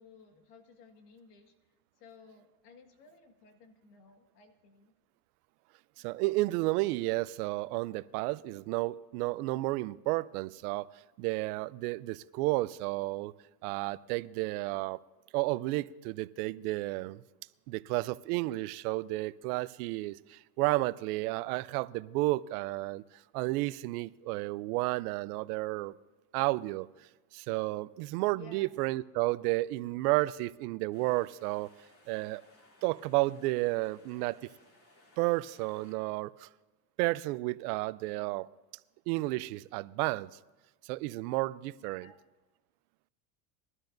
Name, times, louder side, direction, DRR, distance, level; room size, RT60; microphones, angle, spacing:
voice 1, 0.0-1.5 2.0-4.9 6.0-6.1 28.3-28.8 41.8-42.2, left 5 dB, 85° left, 1.9 m, -56 dB
voice 2, 6.0-10.9 11.2-13.3 13.6-15.0 15.3-17.2 17.7-23.0 23.3-25.9 26.3-26.9 27.3-31.7 32.1-32.4 32.8-34.4 35.2-36.5 37.0-38.5 39.1-40.3 40.8-42.1, right 20 dB, 75° right, 0.6 m, -32 dB
sound 1, 30.9-35.9, left 2 dB, 30° left, 2.7 m, -62 dB
21.0 x 12.5 x 2.6 m
supercardioid pair, 115°, 46 cm